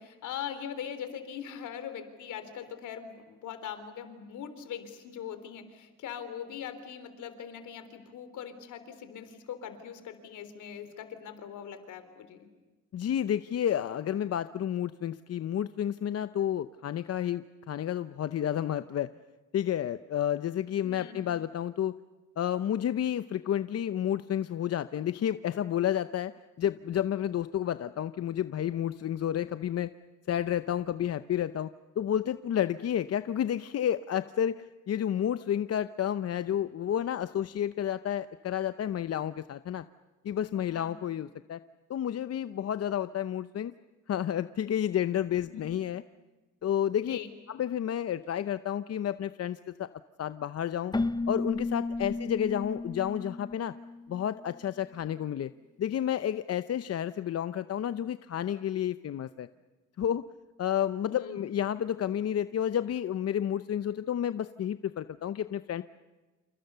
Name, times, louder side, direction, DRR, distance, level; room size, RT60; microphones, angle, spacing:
voice 1, 0.0-12.5 20.8-21.2 40.7-40.9 45.5-45.7 47.0-47.3 52.0-52.1 61.1-61.4, left 8 dB, 80° left, 10 dB, 3.7 m, -41 dB
voice 2, 12.9-19.1 19.5-21.9 22.4-26.3 26.6-29.9 30.3-39.8 40.2-41.6 41.9-43.7 44.1-46.0 46.6-47.2 47.5-49.9 50.2-50.9 51.3-53.7 54.1-55.5 55.8-59.5 60.0-60.3 60.6-65.8, left 10 dB, 55° left, 12 dB, 0.8 m, -30 dB
Keyboard (musical), 50.9-54.6, left 3 dB, 15° left, 0.9 m, -34 dB
29.0 x 28.5 x 6.9 m, 1.2 s
cardioid pair, 90°, 30 cm